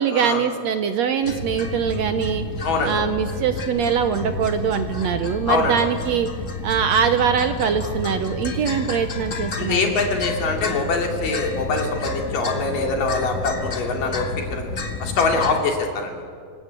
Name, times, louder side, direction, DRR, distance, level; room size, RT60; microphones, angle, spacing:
voice 1, 0.0-2.4 2.8-6.3 6.6-9.9, right 7 dB, 70° right, 8 dB, 1.8 m, -22 dB
sound 1, 1.2-15.6, left 2 dB, 35° left, 1.4 m, -30 dB
voice 2, 2.6-3.0 5.5-5.8 9.6-14.7 15.0-16.2, left 4 dB, 80° left, 2 dB, 4.5 m, -23 dB
27.0 x 19.5 x 8.3 m, 2.1 s
omnidirectional pair, 3.8 m